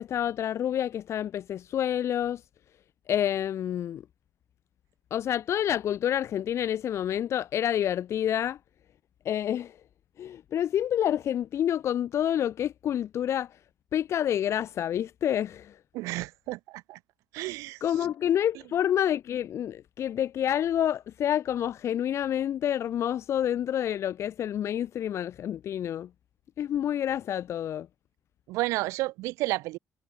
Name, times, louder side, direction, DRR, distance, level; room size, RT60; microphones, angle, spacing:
voice 1, 0.0-2.4 3.1-4.0 5.1-8.6 9.2-9.8 10.2-13.6 13.9-15.8 17.8-26.1 26.6-27.9, left 10 dB, 60° left, 6.0 m, -28 dB
voice 2, 15.9-17.0 17.3-17.8 28.5-29.8, right 20 dB, 80° right, 3.9 m, -31 dB
hypercardioid pair, 55°, 5 cm